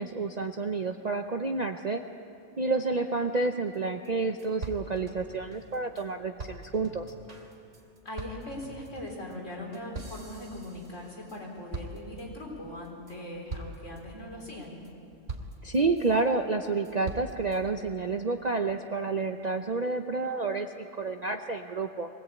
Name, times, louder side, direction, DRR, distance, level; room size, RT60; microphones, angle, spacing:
voice 1, 0.0-2.0 2.6-7.1 15.6-22.1, right 3 dB, 40° right, 5 dB, 0.7 m, -29 dB
sound 1, 3.7-3.8 4.0-4.1 4.4-6.0 6.4-11.4 11.7-12.4 12.8-13.2 13.5-14.0 14.4-14.9 15.3-16.2 16.6-17.6, right 2 dB, 65° right, 2.8 m, -42 dB
voice 2, 8.0-14.8, left 1 dB, 70° left, -1 dB, 4.4 m, -40 dB
23.0 x 18.0 x 8.6 m, 2.6 s
omnidirectional pair, 1.3 m